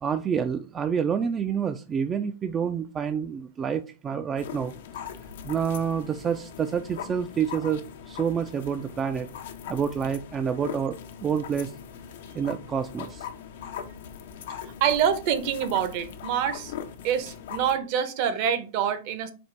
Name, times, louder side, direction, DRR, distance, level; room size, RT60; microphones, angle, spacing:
voice 1, 0.0-4.7 5.4-9.3 9.7-11.7 12.3-13.3, right 7 dB, 20° right, 0.3 m, -28 dB
sound 1, 4.4-17.8, left 8 dB, 75° left, 0.6 m, -40 dB
voice 2, 14.8-16.7 17.0-19.3, right 8 dB, 50° right, 0.7 m, -26 dB
4.2 x 2.4 x 4.4 m
hypercardioid pair, 135°, 0 cm